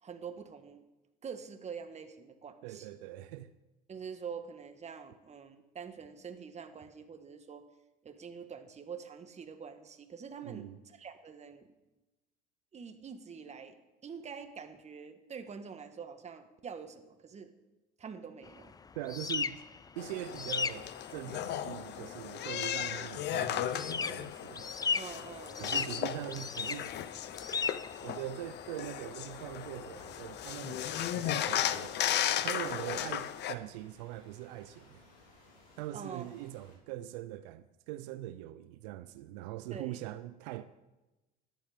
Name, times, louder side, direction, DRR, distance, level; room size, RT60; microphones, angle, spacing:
voice 1, 0.0-0.9 1.2-2.9 3.9-7.7 8.0-11.7 12.7-13.8 14.0-17.5 18.0-18.7 24.9-25.9 35.9-36.3 39.7-40.0, right 6 dB, 30° right, 1.6 m, -45 dB
voice 2, 2.6-3.5 10.4-10.8 19.0-19.6 19.9-24.6 25.6-26.9 28.0-32.0 32.4-35.1 35.8-40.6, right 14 dB, 85° right, 0.6 m, -42 dB
sound 1, 18.4-31.6, left 5 dB, 20° left, 0.5 m, -39 dB
sound 2, 20.0-33.5, left 11 dB, 55° left, 0.8 m, -36 dB
sound 3, 30.7-36.8, left 2 dB, 90° left, 4.8 m, -61 dB
13.5 x 10.5 x 5.1 m
supercardioid pair, 90°, 21 cm